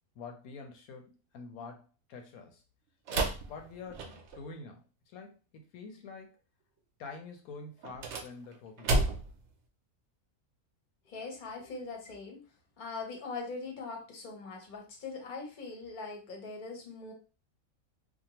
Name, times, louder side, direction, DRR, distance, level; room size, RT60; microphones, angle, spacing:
voice 1, 0.2-2.6 3.1-6.4 7.0-9.2, left 4 dB, 80° left, 3 dB, 1.1 m, -47 dB
sound 1, 3.1-4.5 7.8-9.5, right 2 dB, 65° right, 0.7 m, -32 dB
voice 2, 11.1-12.4 12.8-17.1, left 4 dB, 45° left, 1 dB, 0.7 m, -41 dB
2.7 x 2.2 x 2.8 m, 0.33 s
omnidirectional pair, 1.5 m